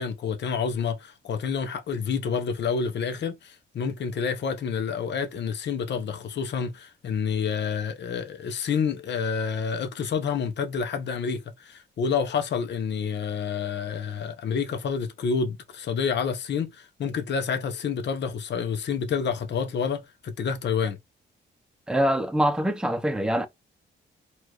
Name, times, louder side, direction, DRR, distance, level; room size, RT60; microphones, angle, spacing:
voice 1, 0.0-21.0, left 6 dB, 60° left, 0.8 m, -28 dB
voice 2, 21.9-23.5, equal, 5° right, 0.7 m, -24 dB
4.3 x 2.5 x 3.0 m
cardioid pair, 80°, 20 cm